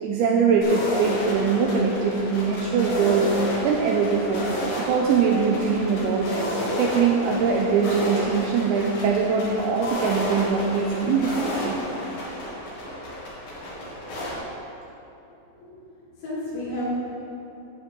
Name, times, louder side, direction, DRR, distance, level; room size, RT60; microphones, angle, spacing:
voice 1, 0.0-3.3 3.6-4.5 4.8-6.3 6.8-11.8, right 5 dB, 90° right, -1 dB, 2.6 m, -22 dB
sound 1, 0.6-14.3, equal, 55° left, 3.5 m, -31 dB
voice 2, 15.6-17.0, left 1 dB, 85° left, -14 dB, 5.2 m, -32 dB
12.0 x 8.8 x 3.8 m, 3.0 s
omnidirectional pair, 5.9 m